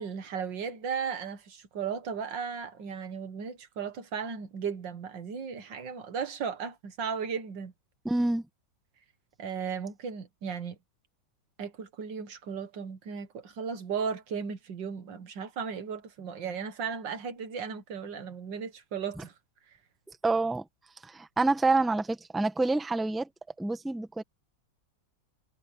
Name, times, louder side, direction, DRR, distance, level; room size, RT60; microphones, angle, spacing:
voice 1, 0.0-7.7 9.4-10.8 11.6-19.3, right 6 dB, 90° right, 2.2 m, -36 dB
voice 2, 8.0-8.4 20.2-20.7 21.0-23.3 23.6-24.2, right 3 dB, ahead, 1.2 m, -27 dB
omnidirectional pair, 1.9 m